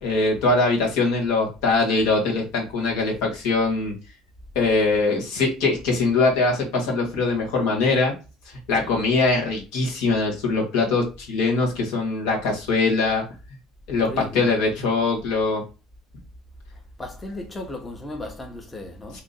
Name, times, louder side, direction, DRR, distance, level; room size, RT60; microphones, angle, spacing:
voice 1, 0.0-3.9 4.5-8.1 8.7-13.2 13.9-15.6 19.1-19.2, left 3 dB, 75° left, 1.3 m, -22 dB
voice 2, 14.0-14.5 17.0-19.2, left 1 dB, 20° left, 0.9 m, -35 dB
2.8 x 2.5 x 3.9 m
supercardioid pair, 85°, 0 cm